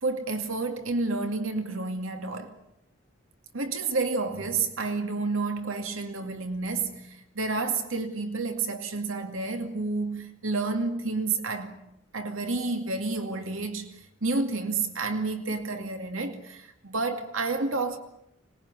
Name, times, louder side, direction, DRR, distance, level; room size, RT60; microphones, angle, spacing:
voice 1, 0.0-2.5 3.5-11.8 12.1-18.0, right 3 dB, 80° right, 2.4 m, -30 dB
25.5 x 20.5 x 9.8 m
head